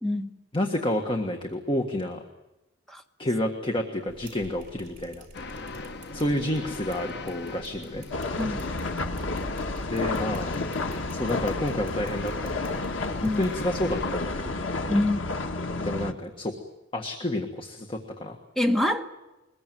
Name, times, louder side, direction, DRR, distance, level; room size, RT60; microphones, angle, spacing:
voice 1, 0.0-0.4 2.9-3.0 8.4-8.6 13.2-13.4 14.9-15.2 18.5-19.1, left 1 dB, ahead, 5 dB, 1.4 m, -25 dB
voice 2, 0.5-2.2 3.2-5.2 6.1-8.0 9.8-10.5 11.1-12.9 13.2-14.6 15.8-16.5 16.9-18.4, left 1 dB, 25° left, 3 dB, 1.6 m, -29 dB
sound 1, 4.1-14.4, right 1 dB, 40° right, 4.6 m, -48 dB
sound 2, 5.3-14.1, left 3 dB, 60° left, 1.1 m, -39 dB
sound 3, 8.1-16.1, left 2 dB, 85° left, 1.5 m, -31 dB
22.5 x 21.0 x 9.3 m, 1.0 s
head